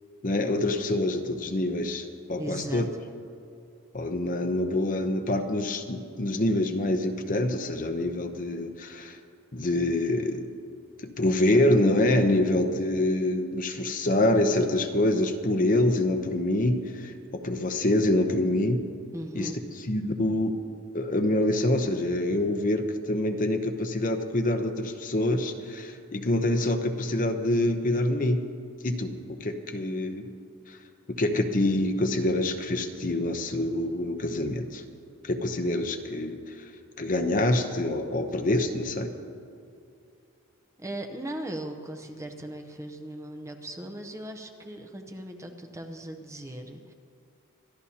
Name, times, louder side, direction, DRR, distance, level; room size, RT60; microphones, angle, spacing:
voice 1, 0.2-2.9 3.9-9.2 9.5-10.5 11.0-18.8 19.3-19.5 19.9-20.6 20.9-28.4 28.8-30.3 30.7-30.8 31.2-34.8 35.2-36.7 37.0-39.1, left 1 dB, 40° left, 6 dB, 0.8 m, -26 dB
voice 2, 2.4-2.8 19.1-19.6 40.8-46.9, right 1 dB, 15° right, 5 dB, 0.7 m, -38 dB
25.0 x 12.5 x 2.9 m, 2.5 s
head